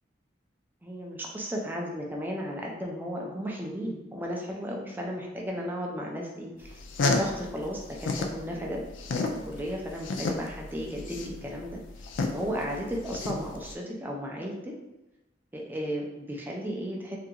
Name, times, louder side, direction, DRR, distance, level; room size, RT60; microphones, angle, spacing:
voice 1, 0.8-8.8 9.4-11.8 12.3-14.7 15.5-17.2, equal, 10° right, -1 dB, 0.4 m, -34 dB
sound 1, 6.7-8.4 8.7-13.7, left 3 dB, 85° left, 0.3 m, -30 dB
2.4 x 2.3 x 2.8 m, 1.0 s
head